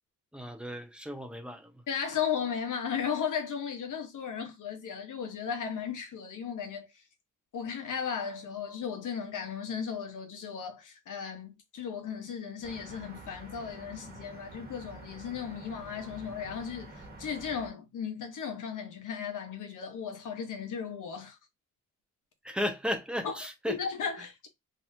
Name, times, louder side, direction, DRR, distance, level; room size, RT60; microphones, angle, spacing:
voice 1, 0.3-1.7 22.4-23.8, equal, 5° right, 0.7 m, -34 dB
voice 2, 1.9-7.0 7.5-21.4 23.2-23.4 23.7-24.5, left 7 dB, 75° left, 1.2 m, -36 dB
sound 1, 12.6-17.7, right 2 dB, 30° right, 1.6 m, -48 dB
3.7 x 3.0 x 2.7 m
wide cardioid pair, 120°, 31 cm